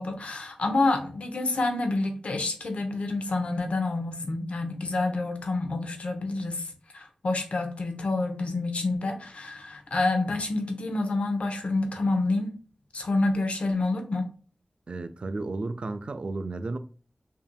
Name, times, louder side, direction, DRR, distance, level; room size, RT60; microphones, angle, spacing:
voice 1, 0.0-12.5 12.9-14.3, left 2 dB, 85° left, 0.8 m, -28 dB
voice 2, 14.9-16.8, right 3 dB, 60° right, 0.4 m, -33 dB
5.4 x 2.7 x 2.3 m
wide cardioid pair, 80°, 2 cm